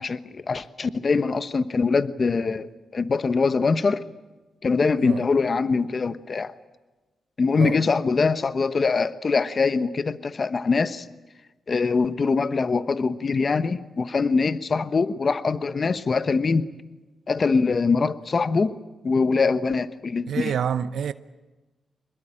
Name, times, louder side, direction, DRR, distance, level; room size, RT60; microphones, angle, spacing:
voice 1, 0.0-2.7 2.9-4.0 4.6-6.5 7.4-11.1 11.7-16.7 17.3-18.7 19.0-20.5, left 4 dB, 45° left, 1.1 m, -23 dB
voice 2, 20.3-21.1, right 8 dB, 75° right, 0.7 m, -27 dB
23.5 x 21.0 x 8.9 m
cardioid pair, 70°, 0 cm